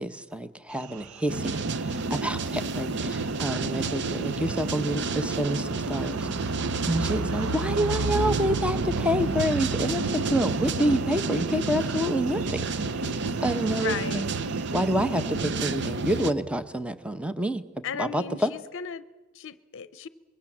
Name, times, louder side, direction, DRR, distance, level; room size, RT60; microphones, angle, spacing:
voice 1, 0.0-6.3 6.9-12.6 13.4-14.3 14.7-17.6 18.0-18.5, equal, 5° right, 11 dB, 1.0 m, -28 dB
sound 1, 0.8-15.4, right 3 dB, 80° right, 0.7 m, -36 dB
sound 2, 1.3-16.3, right 3 dB, 55° right, 0.9 m, -30 dB
voice 2, 13.7-14.3 17.8-19.1 19.3-20.1, left 6 dB, 60° left, 14 dB, 0.7 m, -35 dB
25.0 x 22.0 x 7.4 m, 1.2 s
head